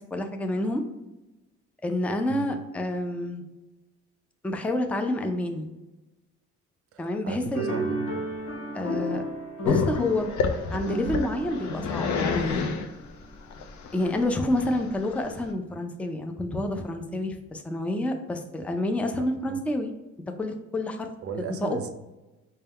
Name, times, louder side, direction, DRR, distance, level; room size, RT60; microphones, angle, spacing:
voice 1, 0.1-0.8 1.8-3.4 4.4-5.7 7.0-7.8 8.7-9.2 9.6-10.3 10.7-12.7 13.9-19.9 20.4-21.1 21.6-21.8, left 1 dB, 5° left, 5 dB, 0.4 m, -28 dB
voice 2, 6.9-8.2 19.2-19.6 21.2-21.9, right 6 dB, 50° right, 7 dB, 0.5 m, -36 dB
sound 1, 7.5-13.1, right 1 dB, 45° left, 0.9 m, -34 dB
Growling, 9.6-15.5, left 5 dB, 70° left, 0.6 m, -29 dB
4.3 x 2.2 x 3.4 m, 1.1 s
cardioid pair, 90°, 30 cm